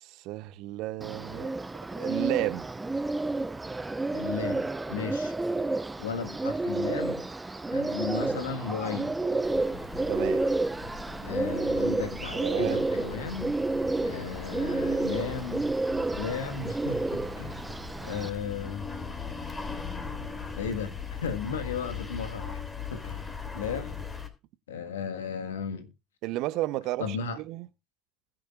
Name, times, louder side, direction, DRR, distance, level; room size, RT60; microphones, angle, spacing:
voice 1, 0.0-1.5 1.9-2.7 10.1-10.4 12.3-12.9 26.2-27.7, right 16 dB, 60° right, 1.0 m, -32 dB
Bird, 1.0-18.3, right 2 dB, 15° right, 0.9 m, -30 dB
voice 2, 4.1-5.3 6.0-7.2 7.7-9.2 11.2-13.6 14.0-15.7 16.2-17.6 18.0-18.9 20.6-22.6 22.9-23.2 23.5-24.0 24.7-25.9 27.0-27.4, left 6 dB, 80° left, 1.7 m, -35 dB
sound 1, 9.4-24.3, left 5 dB, 20° left, 3.3 m, -40 dB
21.0 x 7.6 x 2.5 m
hypercardioid pair, 65°, 0 cm